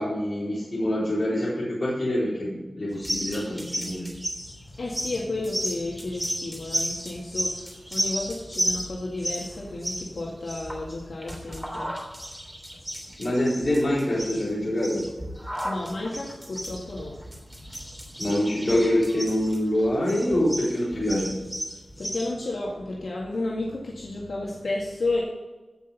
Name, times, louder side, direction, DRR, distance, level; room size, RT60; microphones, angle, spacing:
voice 1, 0.0-4.1 13.2-15.0 18.2-21.3, left 1 dB, 45° left, -7 dB, 4.2 m, -25 dB
sound 1, 2.9-22.3, equal, 5° right, 3.2 m, -33 dB
voice 2, 4.6-12.0 15.6-17.8 18.1-18.4 18.7-18.8 19.7-19.8 22.0-25.2, left 2 dB, 80° left, -4 dB, 2.0 m, -32 dB
15.5 x 6.2 x 5.5 m, 1.2 s
wide cardioid pair, 90°, 0 cm